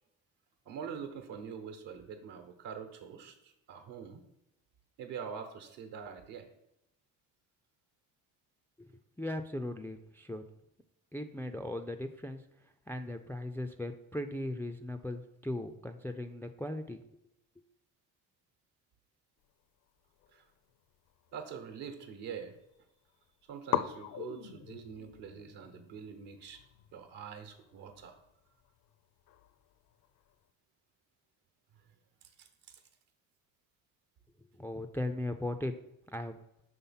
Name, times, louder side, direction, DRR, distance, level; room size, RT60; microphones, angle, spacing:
voice 1, 0.7-4.2 5.0-6.5 20.3-20.5 21.3-22.6 23.5-26.6 26.9-28.2 32.4-32.8, right 7 dB, 75° right, 6 dB, 1.1 m, -44 dB
voice 2, 9.2-10.4 11.1-12.4 12.9-17.0 34.6-35.7 36.1-36.4, left 1 dB, 5° left, 6 dB, 0.3 m, -38 dB
sound 1, 20.1-21.9 22.2-22.9 23.1-23.2 23.7-30.5, left 11 dB, 60° left, 0.6 m, -42 dB
5.7 x 3.5 x 5.6 m, 0.84 s
supercardioid pair, 70°, 41 cm